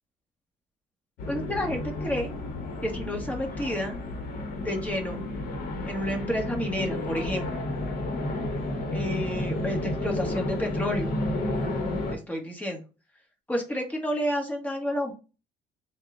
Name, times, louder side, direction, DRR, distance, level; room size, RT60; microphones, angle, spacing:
sound 1, 1.2-12.2, left 2 dB, 60° left, 1.0 m, -31 dB
voice 1, 1.3-2.3 2.8-4.0 4.6-5.2 5.8-7.4 8.9-11.1 12.1-12.8 13.5-15.1, equal, 10° left, 1 dB, 1.2 m, -30 dB
3.6 x 2.2 x 3.6 m, 0.32 s
cardioid pair, 110°, 17 cm